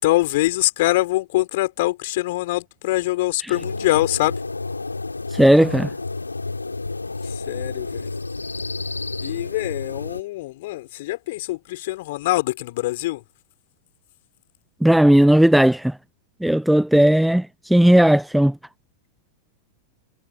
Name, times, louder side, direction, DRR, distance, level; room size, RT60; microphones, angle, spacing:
voice 1, 0.0-4.4 7.2-8.1 9.2-13.2, left 18 dB, 50° left, 5.9 m, -24 dB
sound 1, 3.5-10.2, left 3 dB, 80° left, 3.5 m, -30 dB
voice 2, 5.3-5.9 14.8-15.9 16.4-18.5, right 1 dB, ahead, 0.7 m, -15 dB
figure-of-eight pair, 90°, 0 cm